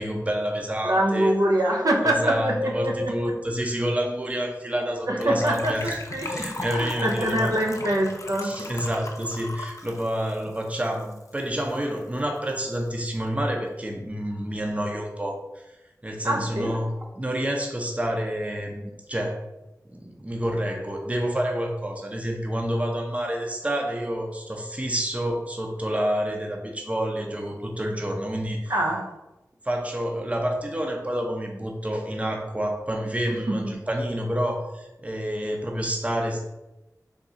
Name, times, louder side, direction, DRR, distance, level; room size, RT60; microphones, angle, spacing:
voice 1, 0.0-1.7 2.0-6.0 6.2-7.5 8.4-15.6 16.0-19.4 19.9-28.7 29.6-36.4, equal, 20° right, 1 dB, 0.6 m, -28 dB
voice 2, 0.8-3.2 5.1-8.7 16.2-16.7 28.7-29.1 33.3-33.7, right 1 dB, 70° right, -1 dB, 0.6 m, -25 dB
Gurgling / Trickle dribble / Fill (with liquid), 5.2-11.4 11.7-11.8 12.0-12.2 12.5-12.6, left 2 dB, 55° left, 0.5 m, -37 dB
3.7 x 2.3 x 4.0 m, 0.98 s
wide cardioid pair, 45°, 6 cm